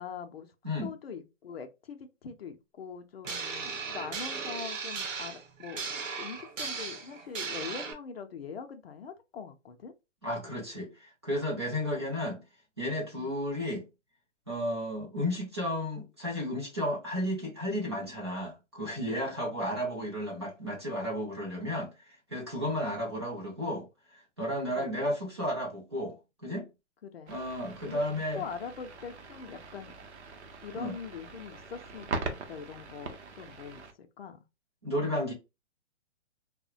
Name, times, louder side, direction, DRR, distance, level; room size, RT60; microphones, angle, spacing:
voice 1, 0.0-0.5 0.8-5.9 6.2-9.9 12.0-12.2 13.2-13.3 15.3-15.4 19.4-19.5 24.7-25.1 27.0-27.4 27.8-28.0 28.3-29.9 30.6-34.4, left 6 dB, 55° left, 0.5 m, -43 dB
sound 1, 3.2-7.9, right 5 dB, 85° right, 0.8 m, -37 dB
voice 2, 10.2-12.4 12.8-13.9 14.5-21.9 22.3-23.9 24.1-26.7 27.3-28.4 30.7-31.0 34.8-35.3, equal, 20° right, 0.4 m, -33 dB
sound 2, 27.3-33.9, right 3 dB, 60° right, 0.7 m, -42 dB
2.7 x 2.1 x 2.4 m
hypercardioid pair, 160°, 38 cm